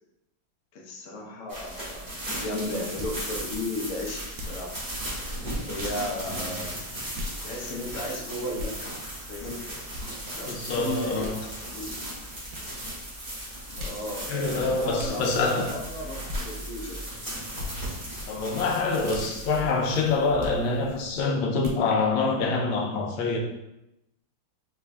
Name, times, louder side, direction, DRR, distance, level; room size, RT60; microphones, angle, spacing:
voice 1, 0.7-4.8 5.6-6.8 7.4-9.0 9.3-9.7 10.3-12.0 13.8-17.0, left 1 dB, 60° left, -1 dB, 0.9 m, -35 dB
sound 1, 1.5-21.3, right 1 dB, 25° right, 1.3 m, -37 dB
sound 2, 3.0-3.2 4.3-4.6 5.8-6.0 7.1-7.4 8.6-8.8 9.9-10.1 11.2-11.4 12.5-12.7 13.8-14.0 15.0-15.2 16.3-16.4 17.6-17.7 19.1-19.3 20.4-20.6 21.6-21.8, left 2 dB, 80° right, 1.5 m, -36 dB
voice 2, 10.5-11.4 13.7-13.9 14.3-15.8 18.3-23.4, left 3 dB, 75° left, 1 dB, 1.3 m, -26 dB
4.5 x 4.0 x 2.2 m, 0.89 s
omnidirectional pair, 2.2 m